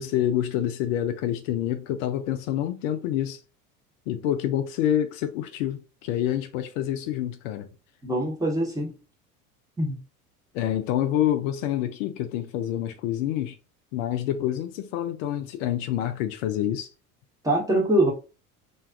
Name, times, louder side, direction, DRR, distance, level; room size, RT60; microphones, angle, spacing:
voice 1, 0.0-3.4 4.1-7.7 10.5-13.6 13.9-16.9, left 11 dB, 65° left, 0.5 m, -27 dB
voice 2, 8.0-8.9 9.8-10.0 17.4-18.1, right 1 dB, 10° right, 0.9 m, -23 dB
2.5 x 2.2 x 2.3 m
hypercardioid pair, 75°, 43 cm